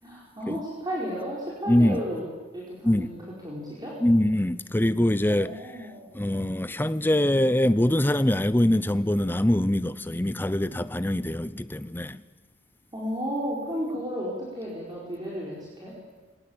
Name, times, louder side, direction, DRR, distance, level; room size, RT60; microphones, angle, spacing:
voice 1, 0.0-2.2 2.5-3.1 3.4-4.0 5.3-6.1 12.9-15.9, equal, 20° right, 4.8 m, -33 dB
voice 2, 1.7-2.0 2.8-3.1 4.0-5.6 6.1-12.2, left 1 dB, 10° left, 0.6 m, -23 dB
22.0 x 19.5 x 8.8 m
head